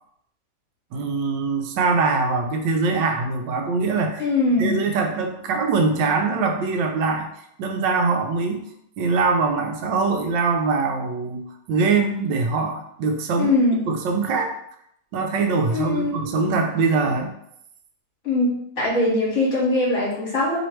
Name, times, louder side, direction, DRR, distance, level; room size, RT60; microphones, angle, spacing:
voice 1, 0.9-4.2 4.6-7.3 7.6-8.7 9.0-13.5 13.9-14.5 15.1-17.3, right 4 dB, 85° right, 4 dB, 1.3 m, -23 dB
voice 2, 4.2-4.8 13.4-13.9 15.7-16.2 18.2-20.6, left 2 dB, 45° left, -5 dB, 1.7 m, -21 dB
3.3 x 3.1 x 4.4 m, 0.72 s
omnidirectional pair, 1.9 m